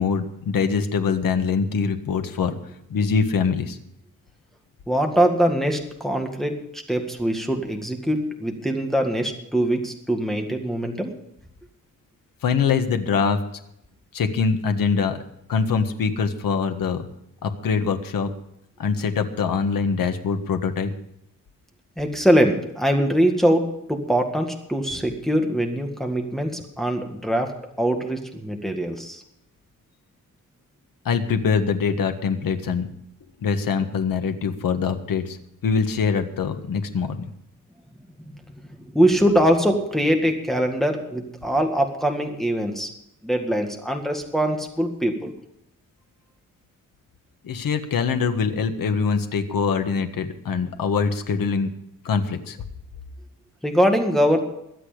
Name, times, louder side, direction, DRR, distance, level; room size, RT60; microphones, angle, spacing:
voice 1, 0.0-2.6 2.9-3.8 12.4-13.4 14.1-15.2 15.5-17.0 17.4-18.3 18.8-20.9 31.1-32.9 33.4-35.4 35.6-37.3 47.4-51.7 52.1-52.6, left 5 dB, 80° left, 7 dB, 1.7 m, -23 dB
voice 2, 4.9-11.1 22.0-29.2 38.9-42.9 43.2-45.3 53.6-54.4, equal, ahead, 2 dB, 1.8 m, -22 dB
22.5 x 8.4 x 5.1 m, 0.79 s
wide cardioid pair, 160°, 33 cm